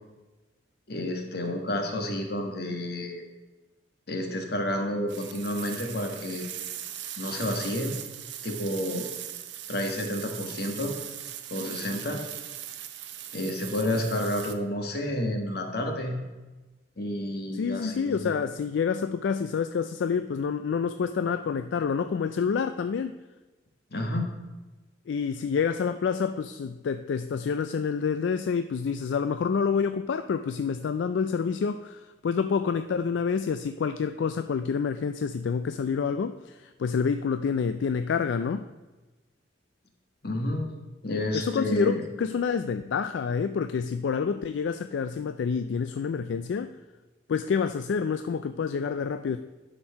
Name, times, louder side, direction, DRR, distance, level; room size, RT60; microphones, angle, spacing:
voice 1, 0.9-3.2 4.1-6.4 7.2-7.9 8.4-9.0 9.7-10.9 11.5-12.2 13.3-16.2 17.0-18.3 23.9-24.3 40.2-40.7 41.0-42.0, left 1 dB, 60° left, 3 dB, 1.4 m, -30 dB
sound 1, 5.1-14.5, right 11 dB, 75° right, 0.7 m, -39 dB
voice 2, 17.5-23.2 25.1-38.7 41.3-46.8 47.3-49.4, left 6 dB, 80° left, 10 dB, 0.3 m, -28 dB
11.0 x 4.5 x 5.7 m, 1.2 s
head